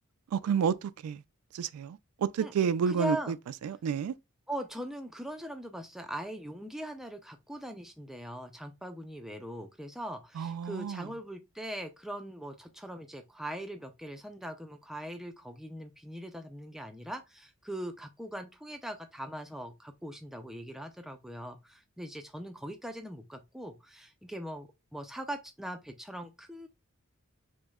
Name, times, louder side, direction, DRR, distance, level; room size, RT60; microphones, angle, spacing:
voice 1, 0.3-1.2 1.5-3.4 3.6-4.1 10.4-11.1, right 7 dB, 90° right, 0.3 m, -30 dB
voice 2, 2.4-3.3 4.5-26.7, equal, ahead, 0.3 m, -41 dB
6.1 x 2.1 x 2.2 m
head